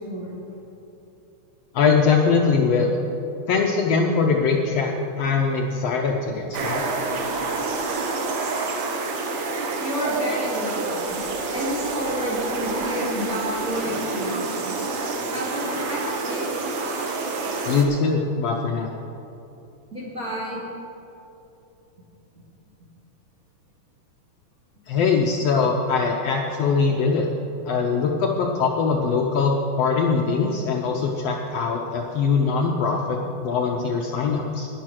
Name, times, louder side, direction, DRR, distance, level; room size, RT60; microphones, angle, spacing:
voice 1, 0.1-0.4 9.8-11.2 11.5-14.9 15.3-16.5 19.9-20.6, equal, 35° right, -6 dB, 1.8 m, -30 dB
voice 2, 1.7-2.9 3.5-6.9 17.7-19.0 24.9-27.3 27.7-34.7, left 5 dB, 70° left, 1 dB, 1.5 m, -22 dB
sound 1, 6.5-17.8, right 3 dB, 60° right, 1.4 m, -28 dB
10.5 x 10.0 x 6.3 m, 2.9 s
omnidirectional pair, 3.5 m